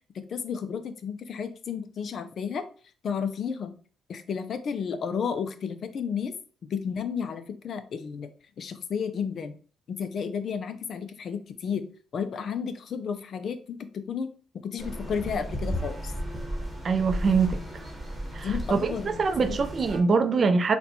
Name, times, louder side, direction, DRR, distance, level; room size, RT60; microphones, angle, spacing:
voice 1, 0.1-2.6 3.0-3.8 4.1-6.3 6.6-8.3 8.6-9.6 9.9-14.3 14.6-16.1 18.4-19.6, left 6 dB, 60° left, 0.4 m, -32 dB
sound 1, 14.8-20.0, equal, 10° right, 1.0 m, -34 dB
voice 2, 16.8-17.6 18.3-20.8, right 4 dB, 45° right, 0.4 m, -24 dB
4.1 x 2.2 x 2.7 m
cardioid pair, 90°, 0 cm